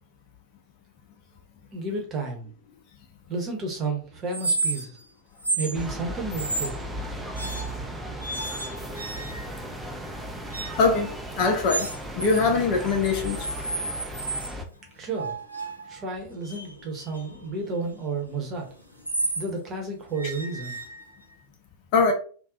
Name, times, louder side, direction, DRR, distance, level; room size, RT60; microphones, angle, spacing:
voice 1, 1.7-2.5 3.3-5.0 5.6-6.7 14.9-15.3 15.9-18.7 19.4-20.8, right 3 dB, 30° right, 0.8 m, -31 dB
sound 1, 4.3-5.0 5.4-5.8 6.3-6.8 7.4-7.9 8.2-9.6 10.5-10.9 11.7-12.4 12.8-14.5 15.2-19.5 20.2-21.3, right 3 dB, 90° right, 0.4 m, -32 dB
sound 2, 5.7-14.6, right 1 dB, 5° right, 0.4 m, -36 dB
voice 2, 10.8-11.9 12.2-13.5 21.9-22.1, left 4 dB, 45° left, 0.6 m, -22 dB
2.6 x 2.1 x 2.3 m
figure-of-eight pair, 90°, 0 cm